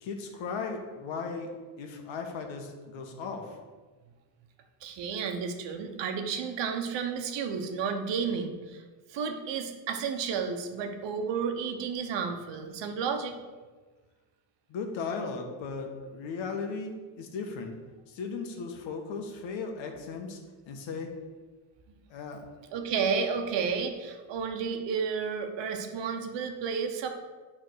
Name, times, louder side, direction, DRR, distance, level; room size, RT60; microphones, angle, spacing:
voice 1, 0.0-3.6 14.7-17.7 18.1-20.4 20.7-21.1 22.1-22.4, left 4 dB, 70° left, 3 dB, 1.4 m, -37 dB
voice 2, 4.8-8.8 9.1-13.4 22.7-27.1, right 6 dB, 65° right, 5 dB, 1.1 m, -32 dB
9.3 x 3.7 x 6.3 m, 1.4 s
cardioid pair, 155°, 47 cm